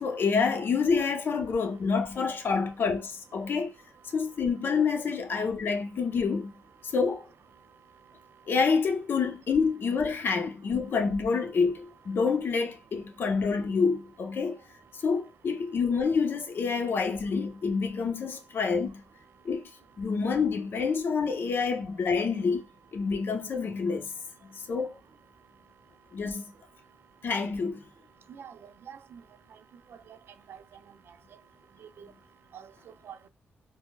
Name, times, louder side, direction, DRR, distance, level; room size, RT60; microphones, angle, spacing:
voice 1, 0.0-3.7 4.1-6.5 6.8-7.2 8.5-14.6 15.0-19.0 19.4-19.6 20.0-22.6 22.9-24.1 24.7-25.0 26.1-26.5 27.2-27.8, left 5 dB, 60° left, 0.7 m, -27 dB
voice 2, 28.3-29.2 29.5-29.6 29.9-30.2 30.5-30.6 31.1-31.2 31.8-32.1 32.5-33.3, right 8 dB, 70° right, 0.4 m, -47 dB
4.4 x 2.0 x 2.3 m
cardioid pair, 75°, 4 cm